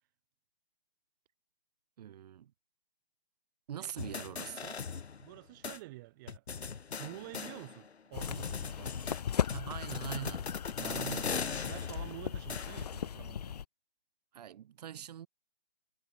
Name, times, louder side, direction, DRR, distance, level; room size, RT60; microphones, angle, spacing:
voice 1, 2.0-2.5 3.7-4.8 9.5-11.4 14.3-15.3, right 10 dB, 40° right, 2.3 m, -43 dB
sound 1, 4.0-5.4 5.6-5.8 6.3-7.9 8.2-13.0, left 5 dB, 80° left, 1.8 m, -39 dB
voice 2, 5.2-6.4 7.0-9.0 11.6-13.6, right 20 dB, 20° right, 1.1 m, -48 dB
sound 2, 8.1-13.6, left 8 dB, 40° left, 0.6 m, -38 dB
hypercardioid pair, 155°, 32 cm